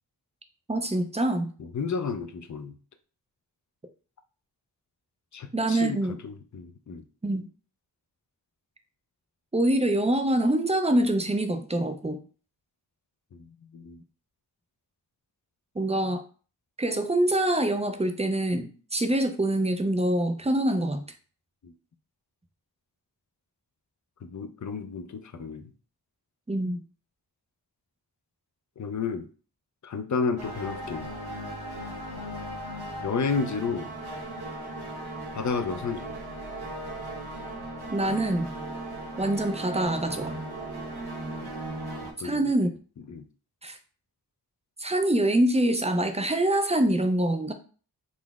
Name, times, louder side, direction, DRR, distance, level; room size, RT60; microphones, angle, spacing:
voice 1, 0.7-1.5 5.5-6.2 7.2-7.5 9.5-12.2 15.8-16.2 16.8-21.0 26.5-26.8 37.9-38.5 39.2-40.4 42.2-42.7 43.6-43.8 44.8-47.5, right 1 dB, 15° right, 7 dB, 0.4 m, -25 dB
voice 2, 1.6-2.7 5.3-7.0 13.3-13.5 13.7-14.0 21.6-21.7 24.2-25.6 28.8-29.3 29.8-31.1 33.0-33.9 35.3-36.2 42.2-42.5 43.1-43.2, left 5 dB, 45° left, 8 dB, 0.4 m, -31 dB
sound 1, 30.4-42.1, right 1 dB, 65° right, 1.1 m, -37 dB
3.9 x 2.0 x 3.4 m, 0.39 s
wide cardioid pair, 70°, 42 cm